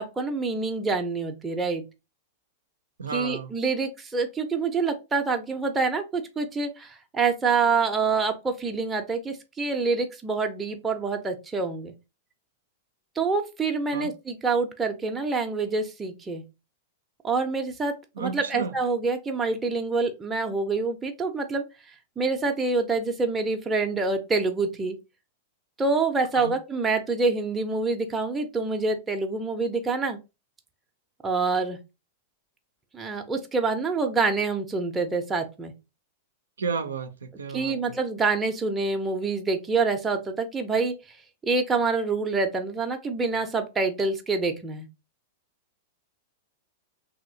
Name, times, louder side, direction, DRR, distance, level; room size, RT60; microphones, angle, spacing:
voice 1, 0.0-1.8 3.1-11.9 13.2-16.4 17.2-21.6 22.2-24.9 25.8-30.2 31.2-31.8 32.9-35.7 37.5-40.9 41.4-44.9, right 4 dB, 15° right, 0.6 m, -26 dB
voice 2, 3.0-3.5 13.9-14.1 18.2-18.8 26.3-26.5 36.6-38.0, right 5 dB, 80° right, 0.4 m, -32 dB
3.0 x 2.8 x 2.6 m
hypercardioid pair, 100°, 0 cm